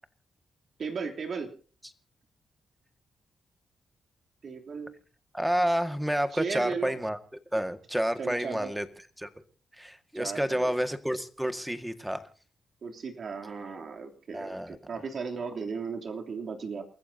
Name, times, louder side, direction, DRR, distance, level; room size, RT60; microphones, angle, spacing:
voice 1, 0.8-1.5 4.4-5.0 6.3-7.0 8.2-8.7 10.1-10.7 12.8-16.8, right 5 dB, 60° right, 2 dB, 3.2 m, -36 dB
voice 2, 5.3-7.2 7.5-8.9 9.2-9.3 9.7-12.3 14.3-14.8, equal, 5° right, 8 dB, 1.8 m, -29 dB
28.5 x 14.5 x 2.8 m, 0.38 s
cardioid pair, 85°, 0 cm